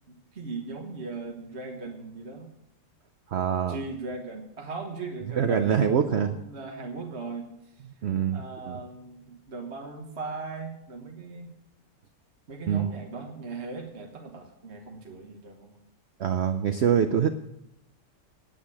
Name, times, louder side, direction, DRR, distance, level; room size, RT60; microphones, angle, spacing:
voice 1, 0.1-2.5 3.7-7.5 8.3-11.5 12.5-15.8, right 3 dB, 40° right, 2 dB, 1.5 m, -38 dB
voice 2, 3.3-3.8 5.4-6.4 8.0-8.8 12.7-12.9 16.2-17.3, right 8 dB, 75° right, 9 dB, 0.6 m, -24 dB
9.5 x 9.1 x 8.5 m, 0.82 s
omnidirectional pair, 1.9 m